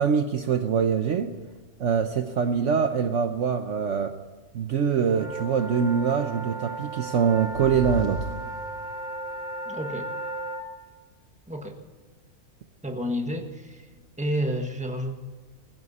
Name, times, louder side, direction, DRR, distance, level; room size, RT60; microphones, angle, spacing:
voice 1, 0.0-1.3 1.8-4.2 4.5-8.3, right 6 dB, 60° right, 8 dB, 1.1 m, -24 dB
sound 1, 5.0-10.6, right 2 dB, 30° right, 2.5 m, -35 dB
sound 2, 6.8-9.2, left 2 dB, 35° left, 1.1 m, -36 dB
voice 2, 9.7-10.1 11.5-11.8 12.8-13.9 14.2-15.1, equal, 5° right, 4 dB, 1.4 m, -30 dB
20.0 x 16.0 x 4.2 m, 1.4 s
omnidirectional pair, 1.5 m